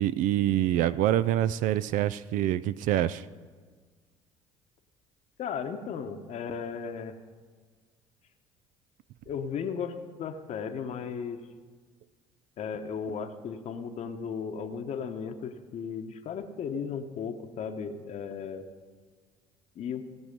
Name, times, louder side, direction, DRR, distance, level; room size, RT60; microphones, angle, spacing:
voice 1, 0.0-3.3, right 12 dB, 65° right, 16 dB, 0.4 m, -26 dB
voice 2, 5.4-7.2 9.3-11.5 12.6-18.6 19.8-20.0, left 6 dB, 50° left, 6 dB, 0.9 m, -35 dB
17.5 x 6.2 x 5.2 m, 1.5 s
hypercardioid pair, 60°, 15 cm